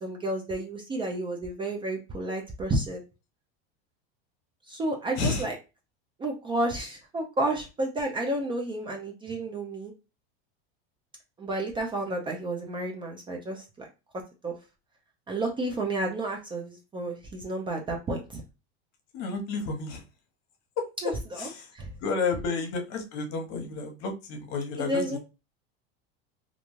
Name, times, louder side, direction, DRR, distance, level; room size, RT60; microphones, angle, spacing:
voice 1, 0.0-3.0 4.7-5.6 6.2-9.9 11.4-13.9 14.4-14.5 15.3-18.4 21.0-21.9 24.8-25.2, right 1 dB, 15° right, 1 dB, 0.4 m, -31 dB
voice 2, 19.1-20.0 20.8-20.9 21.4-21.7 22.0-25.2, left 4 dB, 55° left, 4 dB, 0.9 m, -31 dB
2.5 x 2.2 x 3.0 m, 0.28 s
supercardioid pair, 130°, 30 cm